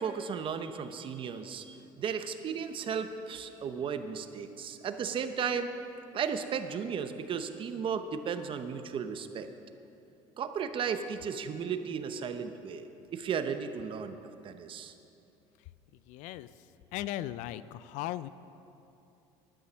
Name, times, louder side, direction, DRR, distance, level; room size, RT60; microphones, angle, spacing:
voice 1, 0.0-5.7 6.1-9.5 10.4-14.2 14.4-14.9, right 6 dB, 40° right, 9 dB, 0.8 m, -35 dB
voice 2, 16.1-16.5 16.9-18.3, left 14 dB, 70° left, 16 dB, 0.4 m, -37 dB
11.5 x 9.4 x 6.2 m, 2.8 s
cardioid pair, 115°, 13 cm